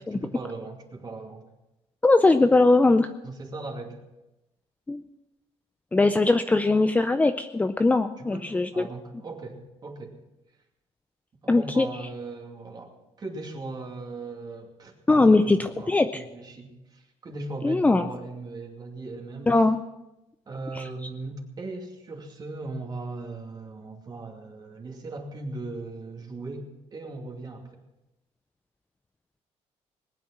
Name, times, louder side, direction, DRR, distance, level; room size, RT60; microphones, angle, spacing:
voice 1, 0.1-1.5 3.2-4.0 8.2-10.2 11.4-19.6 20.5-26.7 26.9-27.8, right 3 dB, 35° right, 2 dB, 2.6 m, -38 dB
voice 2, 2.0-3.1 4.9-5.0 5.9-8.9 11.5-11.9 15.1-16.2 17.6-18.1 19.5-19.8 20.7-20.8, left 2 dB, 10° left, 9 dB, 0.5 m, -20 dB
19.5 x 9.2 x 6.0 m, 0.98 s
cardioid pair, 130°, 12 cm